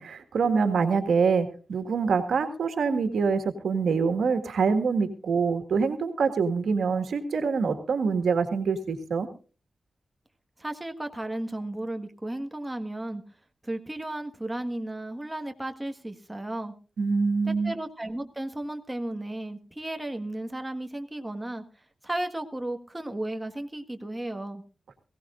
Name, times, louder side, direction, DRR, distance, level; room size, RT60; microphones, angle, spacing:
voice 1, 0.0-9.3 17.0-17.7, right 5 dB, 85° right, 7 dB, 1.7 m, -25 dB
voice 2, 10.6-13.2 13.6-16.7 17.4-21.6 22.0-24.6, right 1 dB, 10° right, 6 dB, 1.5 m, -34 dB
21.5 x 16.5 x 2.5 m, 0.35 s
wide cardioid pair, 100°, 0 cm